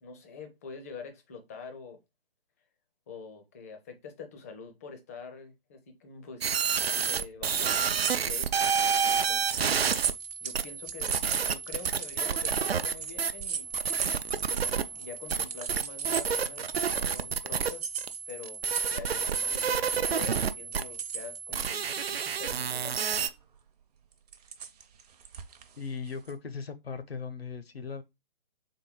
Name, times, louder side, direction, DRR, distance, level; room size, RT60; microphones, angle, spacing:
voice 1, 0.0-2.0 3.1-6.6 7.0-8.5 9.1-9.9 10.4-13.7 14.5-17.8 18.3-18.6 18.9-23.3, left 5 dB, 15° left, 0.4 m, -45 dB
sound 1, 6.4-23.3, right 6 dB, 80° right, 0.5 m, -30 dB
sound 2, 7.7-17.2 17.6-21.4 22.1-22.8 23.1-23.3 24.1-26.3, right 7 dB, 40° right, 0.7 m, -38 dB
voice 2, 25.8-28.0, left 5 dB, 80° left, 0.9 m, -38 dB
3.8 x 3.8 x 3.7 m
figure-of-eight pair, 135°, 30 cm